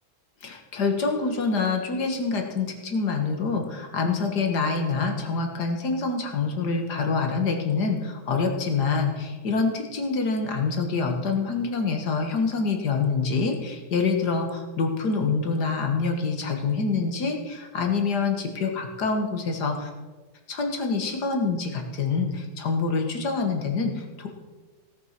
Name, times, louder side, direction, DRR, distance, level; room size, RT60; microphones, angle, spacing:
voice 1, 0.4-19.9 20.5-24.3, left 4 dB, 70° left, 4 dB, 2.2 m, -26 dB
17.0 x 7.1 x 6.0 m, 1.3 s
omnidirectional pair, 1.8 m